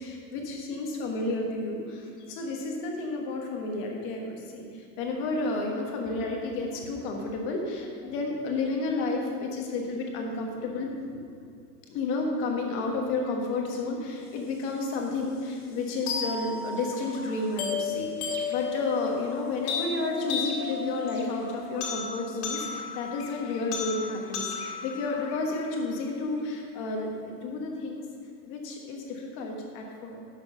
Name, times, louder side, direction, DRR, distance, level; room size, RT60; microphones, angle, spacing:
voice 1, 0.0-11.2 11.9-28.0 28.4-30.2, left 3 dB, 25° left, 1 dB, 1.3 m, -31 dB
sound 1, 16.1-26.1, left 5 dB, 45° left, 2.2 m, -34 dB
11.0 x 6.3 x 6.3 m, 2.4 s
supercardioid pair, 165°, 47 cm